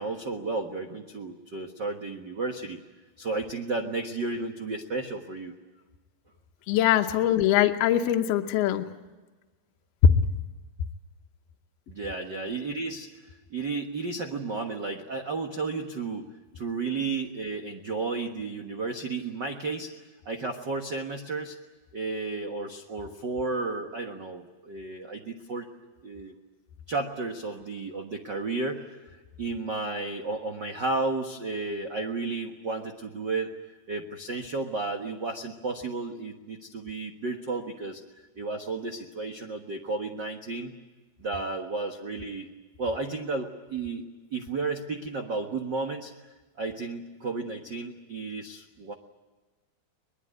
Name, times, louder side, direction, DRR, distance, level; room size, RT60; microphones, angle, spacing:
voice 1, 0.0-2.8 3.2-5.5 11.9-13.1 13.5-16.3 16.5-19.9 20.2-21.6 21.9-25.7 26.0-26.3 26.9-28.8 29.4-33.5 33.9-38.0 38.3-40.7 41.2-42.5 42.8-44.0 44.3-46.1 46.6-48.9, right 3 dB, 85° right, 4 dB, 0.9 m, -33 dB
voice 2, 6.7-8.9 10.0-10.3, left 9 dB, 80° left, 5 dB, 2.8 m, -21 dB
23.5 x 21.0 x 9.5 m, 1.2 s
omnidirectional pair, 4.5 m